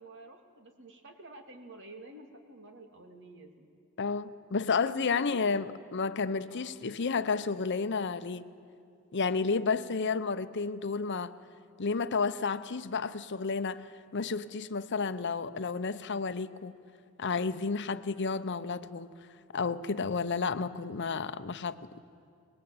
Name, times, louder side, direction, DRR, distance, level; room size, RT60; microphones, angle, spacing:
voice 1, 0.0-3.7 4.5-5.7 6.5-6.8 9.8-10.0, right 2 dB, 60° right, 5 dB, 2.6 m, -50 dB
voice 2, 4.0-8.4 9.1-11.3 11.8-16.7 17.2-19.1 19.5-21.8, left 4 dB, 55° left, 12 dB, 0.8 m, -31 dB
24.5 x 20.0 x 8.8 m, 2.6 s
head